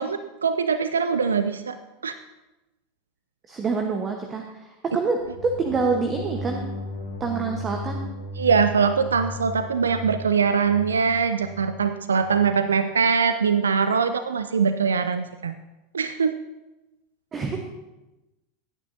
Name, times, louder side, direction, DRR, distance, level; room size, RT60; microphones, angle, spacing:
voice 1, 0.0-1.8 2.0-2.1 8.4-15.5 15.9-16.4, right 6 dB, 80° right, 11 dB, 0.4 m, -22 dB
voice 2, 3.5-6.6 7.2-8.0 17.3-17.6, right 4 dB, 30° right, 3 dB, 1.1 m, -26 dB
sound 1, 5.2-12.5, left 1 dB, 80° left, 3.3 m, -36 dB
16.0 x 9.8 x 2.7 m, 1.0 s
figure-of-eight pair, 85°, 0 cm